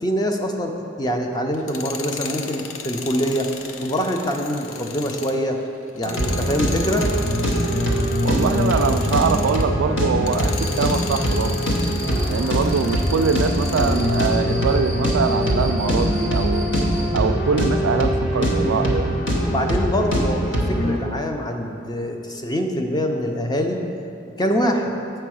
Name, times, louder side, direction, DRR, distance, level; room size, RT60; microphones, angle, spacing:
voice 1, 0.0-3.5 3.8-5.6 6.0-7.1 19.5-23.8 24.4-24.9, equal, 20° left, 3 dB, 0.5 m, -24 dB
Tools, 1.5-9.7 10.2-14.4, left 6 dB, 90° left, 0.5 m, -36 dB
sound 1, 6.0-21.0, equal, 75° left, 1.1 m, -22 dB
voice 2, 8.2-11.7 12.3-16.7 17.1-19.1, right 5 dB, 75° right, 9 dB, 0.3 m, -23 dB
Cricket, 10.6-17.1, right 1 dB, 50° left, 1.7 m, -36 dB
7.6 x 4.5 x 6.2 m, 2.6 s
head